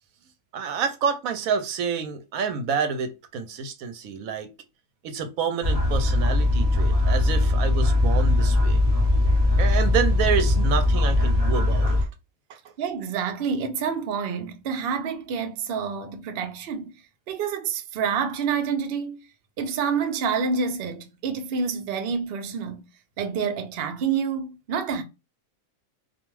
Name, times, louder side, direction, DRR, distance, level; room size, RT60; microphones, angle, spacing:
voice 1, 0.5-4.5 5.0-8.8 9.6-12.0, right 6 dB, 80° right, 1.0 m, -28 dB
sound 1, 5.6-12.0, left 2 dB, 25° right, 0.7 m, -20 dB
voice 2, 12.8-16.9 17.3-19.2 19.6-22.8 23.2-25.0, right 6 dB, 60° right, 0.6 m, -28 dB
2.4 x 2.2 x 3.0 m
omnidirectional pair, 1.5 m